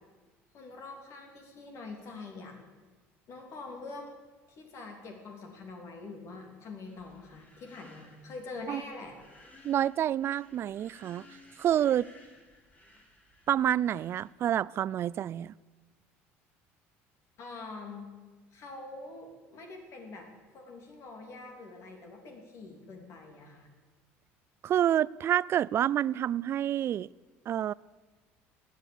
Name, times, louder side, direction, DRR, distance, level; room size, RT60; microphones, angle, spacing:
voice 1, 0.5-2.6 3.3-4.1 4.5-9.1 17.4-18.1 18.5-20.3 20.5-23.7, left 3 dB, 55° left, 3.1 m, -45 dB
sound 1, 6.8-14.3, left 2 dB, 25° left, 3.9 m, -58 dB
voice 2, 9.6-11.3 11.6-12.1 13.5-15.5 24.6-27.1 27.5-27.7, right 11 dB, 45° right, 0.3 m, -28 dB
16.5 x 9.5 x 7.1 m
supercardioid pair, 95°, 6 cm